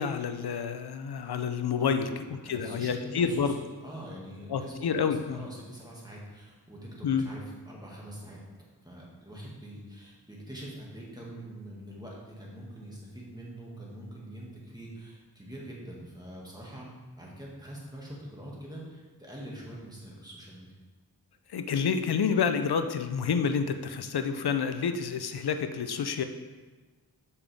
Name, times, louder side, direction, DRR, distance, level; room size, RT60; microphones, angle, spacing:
voice 1, 0.0-3.6 4.5-5.5 7.0-7.3 21.5-26.2, left 6 dB, 70° left, 8 dB, 0.6 m, -29 dB
voice 2, 2.4-8.4 8.8-16.9 17.2-20.7, right 1 dB, 10° right, -4 dB, 2.0 m, -44 dB
7.0 x 5.5 x 3.5 m, 1.3 s
wide cardioid pair, 50°, 40 cm